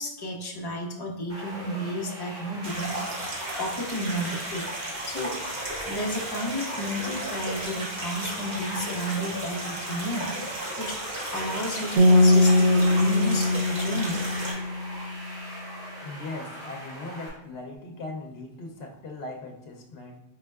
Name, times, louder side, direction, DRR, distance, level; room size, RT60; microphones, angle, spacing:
voice 1, 0.0-4.7 5.1-10.9 11.3-14.3, equal, 25° left, -1 dB, 0.7 m, -32 dB
sound 1, 1.3-17.3, right 1 dB, 15° right, 1.5 m, -41 dB
sound 2, 2.6-14.5, right 1 dB, 45° right, 1.1 m, -34 dB
sound 3, 12.0-15.2, left 2 dB, 85° right, 0.9 m, -21 dB
voice 2, 16.0-20.2, left 2 dB, 75° left, 0 dB, 0.8 m, -39 dB
4.3 x 3.9 x 2.3 m, 0.87 s
omnidirectional pair, 1.0 m